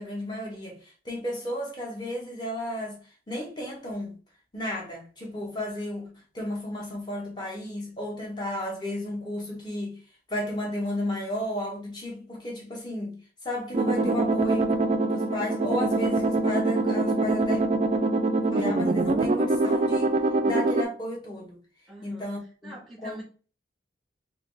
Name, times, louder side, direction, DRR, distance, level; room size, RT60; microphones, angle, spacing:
voice 1, 0.0-3.0 3.3-4.1 4.5-10.0 10.3-14.7 15.0-17.6 18.5-20.1 20.4-21.6 22.0-22.7 23.0-23.2, left 1 dB, 25° left, 1.0 m, -33 dB
sound 1, 13.7-20.8, right 2 dB, 35° right, 0.3 m, -24 dB
voice 2, 21.9-22.3 22.6-23.2, right 1 dB, ahead, 1.0 m, -44 dB
3.2 x 2.2 x 3.2 m
head